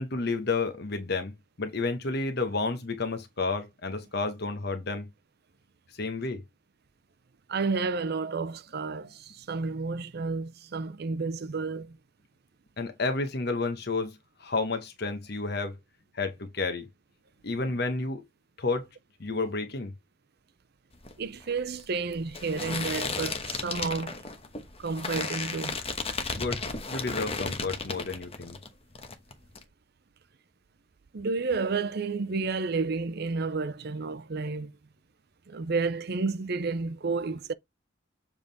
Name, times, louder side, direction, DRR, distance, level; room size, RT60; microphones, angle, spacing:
voice 1, 0.0-5.1 5.9-6.4 12.8-15.8 16.1-16.9 17.4-18.2 18.6-18.9 19.2-19.9 26.3-26.6 26.9-28.6, left 3 dB, 55° left, 1.0 m, -31 dB
voice 2, 7.5-12.0 21.2-24.2 24.8-25.8 31.1-34.7 35.5-37.5, right 4 dB, 55° right, 0.5 m, -31 dB
sound 1, 20.9-28.7 28.9-29.6, left 4 dB, 30° left, 1.1 m, -34 dB
7.4 x 3.6 x 4.0 m
head